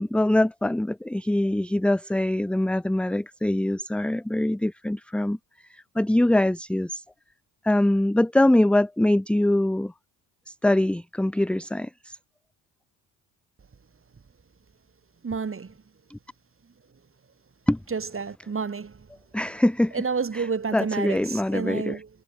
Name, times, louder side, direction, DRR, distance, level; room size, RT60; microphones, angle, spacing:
voice 1, 0.0-5.4 5.7-7.0 7.6-9.9 10.5-12.2 16.1-16.2 17.7-17.8 19.3-20.0 20.3-20.5 20.7-22.0, left 1 dB, ahead, 0.9 m, -23 dB
voice 2, 15.2-15.7 17.9-19.1 19.9-22.1, right 5 dB, 25° right, 4.1 m, -30 dB
figure-of-eight pair, 55°, 50 cm